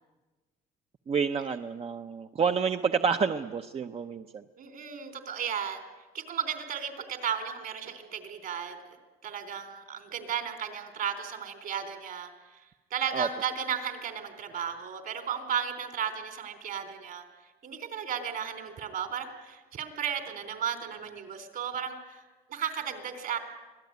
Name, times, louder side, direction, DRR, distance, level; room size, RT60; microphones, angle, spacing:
voice 1, 1.1-4.4 13.1-13.3, right 6 dB, 35° right, 7 dB, 0.8 m, -29 dB
voice 2, 4.6-5.8 6.1-8.8 9.2-17.2 17.6-23.4, right 8 dB, 60° right, 8 dB, 3.8 m, -34 dB
25.5 x 17.5 x 9.5 m, 1.2 s
cardioid pair, 110°, 17 cm